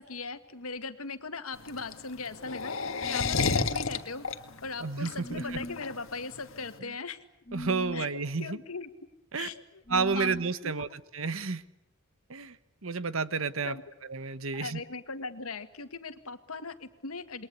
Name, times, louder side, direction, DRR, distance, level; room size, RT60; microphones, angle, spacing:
voice 1, 0.0-2.8 3.0-4.2 4.6-7.2 7.9-8.1 8.4-8.9 9.4-9.8 10.1-10.3 10.6-10.9 13.6-13.8 14.5-17.5, left 4 dB, 85° left, 10 dB, 1.9 m, -39 dB
sound 1, 1.5-6.7, left 4 dB, 65° left, 1.6 m, -31 dB
sound 2, 3.0-3.6 5.2-5.8 7.5-8.1 9.9-10.5, left 1 dB, 35° left, 1.1 m, -40 dB
voice 2, 4.8-5.6 7.5-8.6 9.3-9.5 9.9-10.9 11.1-11.6 12.3-12.6 12.8-13.7 14.1-14.8, right 4 dB, 70° right, 14 dB, 1.2 m, -31 dB
28.0 x 22.0 x 8.3 m, 0.82 s
head